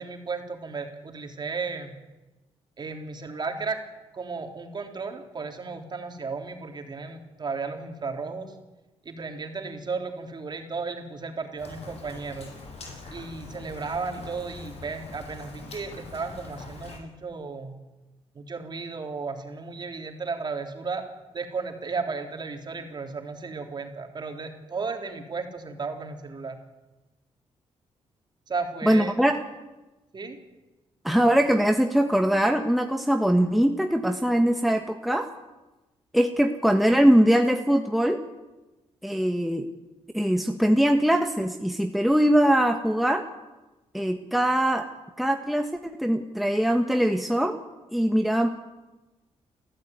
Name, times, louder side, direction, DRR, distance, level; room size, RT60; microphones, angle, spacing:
voice 1, 0.0-1.9 2.8-3.8 4.1-8.6 9.0-12.5 13.1-17.8 18.3-21.0 21.3-26.6 28.5-29.3 30.1-30.4, right 4 dB, 40° right, 4 dB, 3.8 m, -34 dB
Rain, 11.6-17.0, left 3 dB, 65° left, 6.6 m, -43 dB
voice 2, 28.8-29.3 31.0-35.3 36.1-38.2 39.0-39.7 40.1-43.2 43.9-44.9 45.2-47.6 47.9-48.5, equal, ahead, 5 dB, 1.5 m, -22 dB
29.5 x 14.5 x 9.5 m, 1.1 s
cardioid pair, 95°, 11 cm